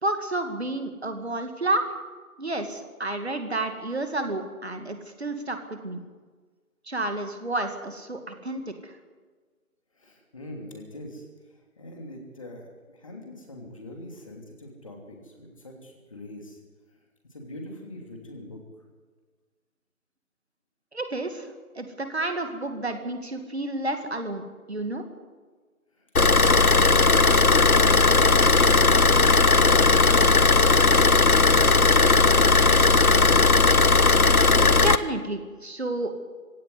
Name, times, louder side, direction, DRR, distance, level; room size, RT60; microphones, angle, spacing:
voice 1, 0.0-1.9 2.4-5.6 5.8-6.0 6.9-8.9 20.9-21.5 21.8-25.0 34.8-36.1, right 2 dB, 45° right, 6 dB, 2.4 m, -30 dB
voice 2, 9.9-11.2 11.5-16.6 17.3-18.6 26.0-26.9, left 1 dB, 25° left, 1 dB, 2.9 m, -43 dB
Car / Idling, 26.2-35.0, left 3 dB, 80° left, 1.2 m, -17 dB
20.0 x 17.0 x 9.7 m, 1.4 s
figure-of-eight pair, 165°, 43 cm